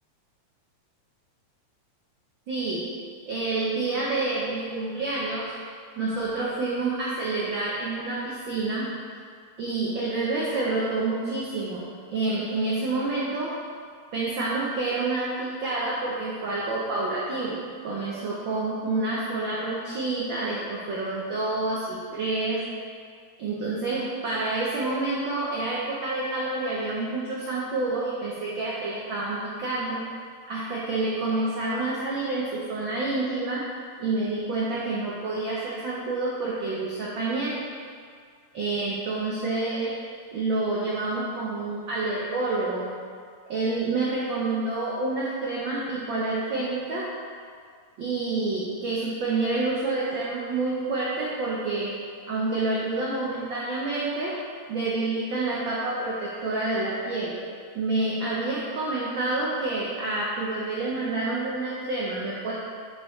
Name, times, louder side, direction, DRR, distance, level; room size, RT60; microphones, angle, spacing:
voice 1, 2.5-2.9 3.3-5.5 6.0-8.9 9.6-13.5 14.1-17.6 17.8-22.6 23.4-30.0 30.5-33.6 34.0-37.6 38.5-40.0 40.3-42.9 43.5-47.1 48.0-51.9 52.3-54.3 54.7-57.3 57.7-62.5, right 2 dB, 90° right, -6 dB, 1.0 m, -28 dB
8.4 x 4.9 x 3.1 m, 2.1 s
omnidirectional pair, 3.4 m